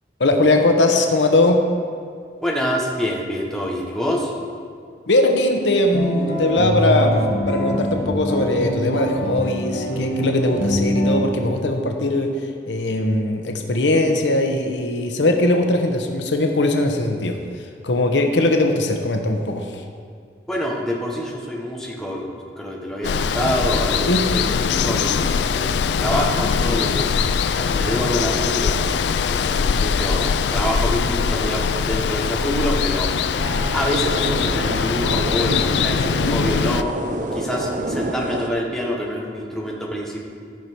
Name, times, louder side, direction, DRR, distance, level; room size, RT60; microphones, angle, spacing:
voice 1, 0.2-1.6 5.1-12.3 12.7-17.4 17.8-19.8 24.1-24.2, left 2 dB, 90° left, 4 dB, 0.9 m, -20 dB
voice 2, 2.4-4.3 20.5-22.3 22.6-27.2 27.5-29.0 29.2-33.1 33.7-36.9 37.3-40.2, equal, 5° left, -3 dB, 1.3 m, -26 dB
sound 1, 5.9-11.3, equal, 50° left, 1.4 m, -24 dB
Water, 23.0-36.8, left 6 dB, 75° left, 0.3 m, -22 dB
sound 2, 33.4-38.5, right 1 dB, 45° right, 0.6 m, -28 dB
13.5 x 5.8 x 4.6 m, 2.3 s
head